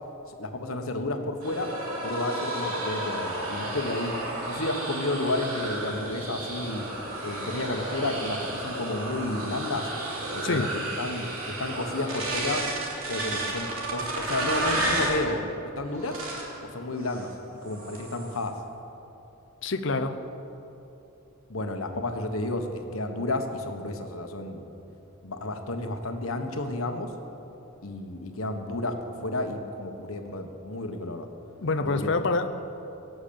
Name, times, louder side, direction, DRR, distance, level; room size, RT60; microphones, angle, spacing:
voice 1, 0.4-1.7 2.0-4.1 4.5-6.9 7.2-9.9 10.3-11.3 11.6-12.6 13.1-15.5 15.8-16.1 16.6-17.3 17.6-18.5 21.5-24.6 25.2-27.1 27.8-31.3 31.8-32.1, left 2 dB, 75° left, 5 dB, 1.3 m, -31 dB
sound 1, 1.4-15.2 15.9-16.6 17.0-17.3 17.7-18.4, right 1 dB, 75° right, 3.0 m, -32 dB
voice 2, 19.6-20.2 31.6-32.6, left 3 dB, 55° left, 8 dB, 0.7 m, -26 dB
17.5 x 7.0 x 8.8 m, 3.0 s
head